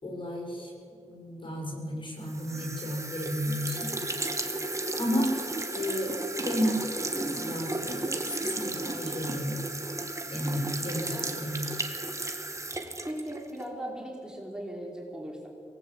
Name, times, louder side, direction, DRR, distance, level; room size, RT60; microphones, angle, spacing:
voice 1, 0.0-0.7 1.1-3.9 5.0-5.3 5.7-6.2 6.4-9.6 10.3-11.7, equal, 40° left, 0 dB, 7.0 m, -32 dB
sound 1, 2.3-13.7, right 2 dB, 25° right, 2.1 m, -34 dB
voice 2, 13.1-15.5, right 1 dB, 5° right, -2 dB, 4.8 m, -38 dB
22.5 x 19.0 x 8.7 m, 2.4 s
cardioid pair, 75°, 13 cm